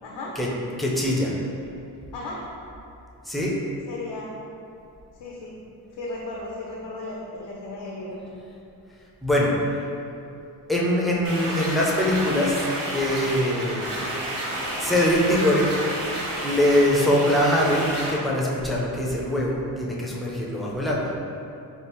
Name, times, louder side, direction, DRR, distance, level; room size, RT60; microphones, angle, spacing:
voice 1, 0.0-0.4 2.1-2.4 3.9-4.4 5.1-5.6 6.0-8.2, left 2 dB, 85° left, -4 dB, 0.6 m, -35 dB
voice 2, 0.8-1.4 3.3-3.5 9.2-9.5 10.7-12.6 12.9-13.9 14.8-15.7 16.4-21.1, left 1 dB, ahead, -4 dB, 0.4 m, -22 dB
sound 1, 11.2-18.1, right 1 dB, 55° right, 1.0 m, -30 dB
3.5 x 2.4 x 4.4 m, 2.7 s
wide cardioid pair, 130°, 40 cm